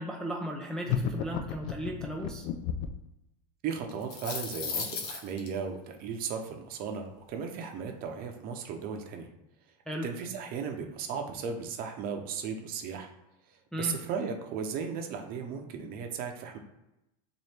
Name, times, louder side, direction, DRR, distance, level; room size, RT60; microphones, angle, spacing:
voice 1, 0.0-2.5 9.9-10.1 13.7-14.0, equal, 5° left, -1 dB, 0.4 m, -36 dB
sound 1, 0.9-3.1, left 8 dB, 60° left, 0.5 m, -32 dB
voice 2, 3.6-9.3 10.0-13.1 13.5-16.6, right 6 dB, 45° right, 4 dB, 0.7 m, -36 dB
sound 2, 3.9-5.5, left 5 dB, 80° left, 1.0 m, -35 dB
3.2 x 2.6 x 4.3 m, 0.89 s
supercardioid pair, 125°, 20 cm